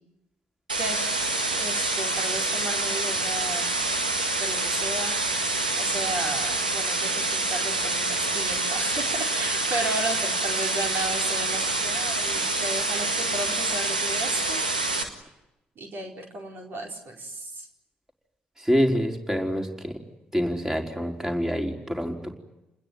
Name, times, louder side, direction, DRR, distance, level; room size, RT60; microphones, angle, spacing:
sound 1, 0.7-15.0, right 2 dB, 90° right, 1.8 m, -26 dB
voice 1, 0.8-1.1 1.6-3.7 4.4-5.3 5.8-14.6 15.8-17.7, right 2 dB, 50° right, 1 dB, 4.6 m, -34 dB
voice 2, 18.6-20.0 20.3-22.4, equal, 10° right, 2 dB, 4.8 m, -26 dB
29.0 x 21.0 x 9.4 m, 0.94 s
figure-of-eight pair, 40°, 4 cm